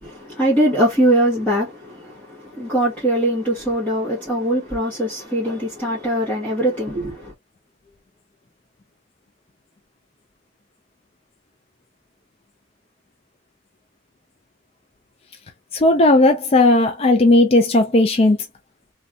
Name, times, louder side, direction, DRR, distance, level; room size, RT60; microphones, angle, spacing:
voice 1, 0.0-7.3, right 1 dB, 10° left, 1.2 m, -21 dB
voice 2, 15.7-18.4, left 2 dB, 30° left, 0.4 m, -15 dB
3.2 x 2.7 x 2.3 m
head